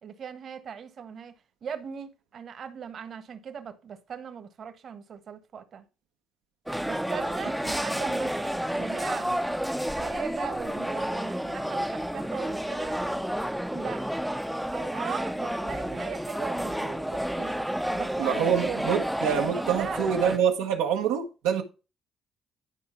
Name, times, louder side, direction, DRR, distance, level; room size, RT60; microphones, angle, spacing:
voice 1, 0.0-1.3 1.6-5.8 6.8-9.3 10.0-13.0 13.7-14.1 14.7-17.6 17.9-18.9 19.3-20.2, right 7 dB, 60° right, 1.5 m, -38 dB
sound 1, 6.7-20.4, equal, 5° right, 0.8 m, -30 dB
voice 2, 18.2-21.6, right 8 dB, 85° right, 1.2 m, -26 dB
11.0 x 4.8 x 4.5 m
supercardioid pair, 60°, 0 cm